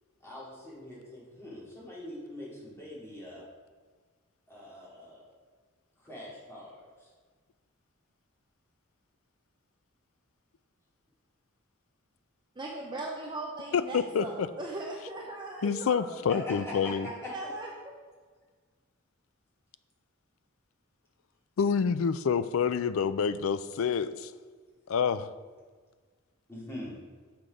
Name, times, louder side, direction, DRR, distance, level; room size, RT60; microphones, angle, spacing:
voice 1, 0.2-3.4 4.5-5.3 6.0-7.1 16.3-17.3 26.5-26.9, left 1 dB, 15° left, -7 dB, 2.5 m, -42 dB
voice 2, 12.6-16.4 17.3-17.7, right 2 dB, 20° right, -1 dB, 0.7 m, -39 dB
voice 3, 13.7-14.5 15.6-17.1 21.6-24.3 24.9-25.3, left 6 dB, 70° left, 14 dB, 0.4 m, -27 dB
6.7 x 5.9 x 4.9 m, 1.5 s
head